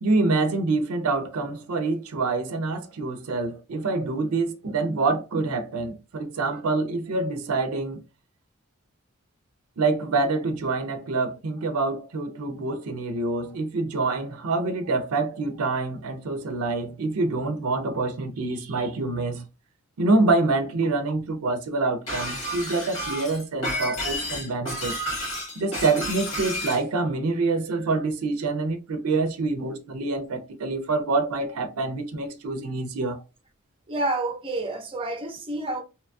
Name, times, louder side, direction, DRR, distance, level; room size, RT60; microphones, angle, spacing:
voice 1, 0.0-8.0 9.8-19.4 20.0-25.0 25.6-33.2, right 3 dB, 80° right, 0.5 m, -26 dB
Shatter, 22.1-26.8, equal, 80° left, 1.5 m, -31 dB
voice 2, 33.9-35.8, right 2 dB, 25° right, 0.5 m, -29 dB
2.8 x 2.2 x 2.5 m
head